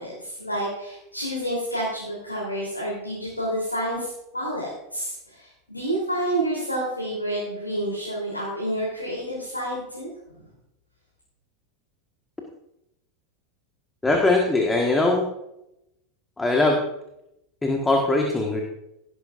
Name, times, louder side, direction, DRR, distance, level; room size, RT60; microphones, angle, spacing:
voice 1, 0.0-10.1, right 1 dB, 85° left, -4 dB, 3.5 m, -29 dB
voice 2, 14.0-15.3 16.4-16.8 17.6-18.6, left 2 dB, 10° left, 1 dB, 1.5 m, -21 dB
17.0 x 9.9 x 2.6 m, 0.85 s
figure-of-eight pair, 85°, 0 cm